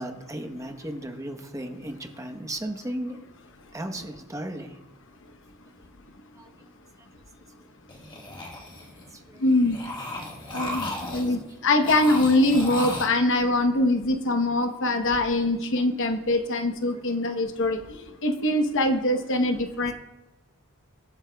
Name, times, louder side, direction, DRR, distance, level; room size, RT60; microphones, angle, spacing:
voice 1, 0.0-3.2 3.7-4.8 6.4-6.5 9.3-9.4 17.3-17.5, right 1 dB, 15° right, 5 dB, 1.0 m, -35 dB
sound 1, 7.9-9.1 9.5-11.5 11.8-13.0, left 1 dB, 20° left, 1.6 m, -35 dB
voice 2, 9.4-9.8 10.5-17.8 18.2-19.9, left 2 dB, 60° left, 6 dB, 1.0 m, -23 dB
24.5 x 8.8 x 2.3 m, 1.0 s
head